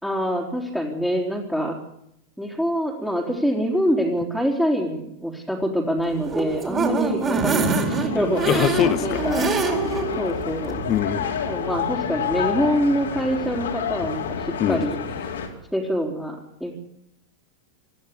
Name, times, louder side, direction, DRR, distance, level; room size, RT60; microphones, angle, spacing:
voice 1, 0.0-1.8 2.4-8.4 9.0-9.5 10.2-10.8 11.5-15.0 15.7-16.7, equal, ahead, -3 dB, 3.7 m, -25 dB
sound 1, 6.1-10.1 10.5-10.6 10.9-11.0, right 4 dB, 20° right, 4.6 m, -24 dB
sound 2, 7.8-15.5, left 6 dB, 65° left, 3.7 m, -29 dB
voice 2, 8.4-9.2 9.5-9.6 10.9-11.4 14.6-14.9 15.3-15.5, left 10 dB, 35° left, 10 dB, 1.7 m, -23 dB
26.0 x 14.5 x 8.4 m, 0.78 s
figure-of-eight pair, 90°, 0 cm